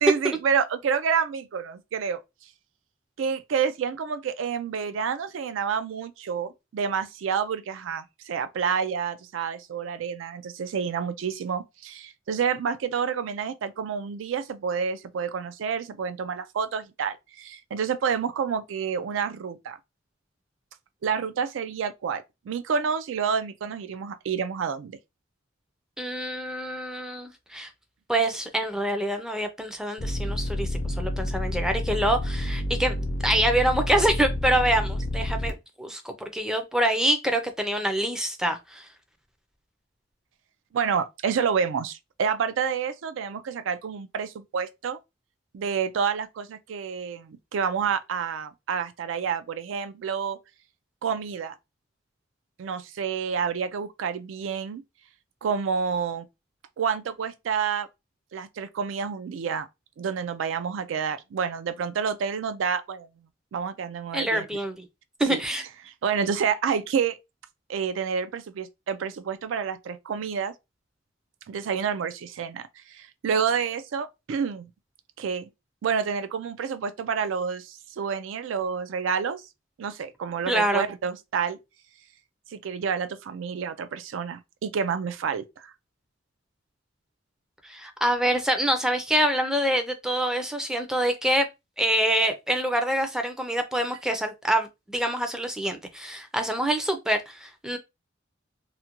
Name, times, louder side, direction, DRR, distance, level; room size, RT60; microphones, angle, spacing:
voice 1, 0.0-2.2 3.2-19.8 21.0-25.0 40.7-45.0 45.5-50.4 51.0-51.5 52.6-54.8 55.4-56.3 56.8-57.9 58.3-59.7 60.0-64.5 65.3-65.4 65.8-67.2 67.7-70.5 71.5-74.7 75.2-75.5 75.8-79.4 79.8-81.6 82.5-85.7, right 6 dB, 75° right, 0.4 m, -29 dB
voice 2, 26.0-27.7 28.1-35.5 35.8-38.9 64.1-64.8 65.2-65.6 80.5-80.9 87.6-91.5 91.8-97.8, right 1 dB, 5° right, 0.4 m, -26 dB
sound 1, 30.0-35.5, left 1 dB, 75° left, 0.6 m, -29 dB
2.5 x 2.1 x 2.8 m
head